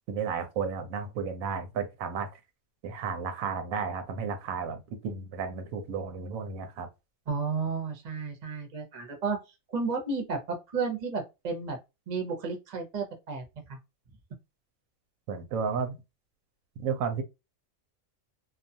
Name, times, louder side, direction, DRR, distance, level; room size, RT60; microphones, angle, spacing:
voice 1, 0.1-2.3 2.8-6.9 15.3-16.0 16.8-17.2, right 6 dB, 90° right, 1.0 m, -33 dB
voice 2, 7.3-9.4 9.7-11.8 12.1-13.8, right 4 dB, 40° right, 0.7 m, -32 dB
2.3 x 2.3 x 2.6 m
omnidirectional pair, 1.4 m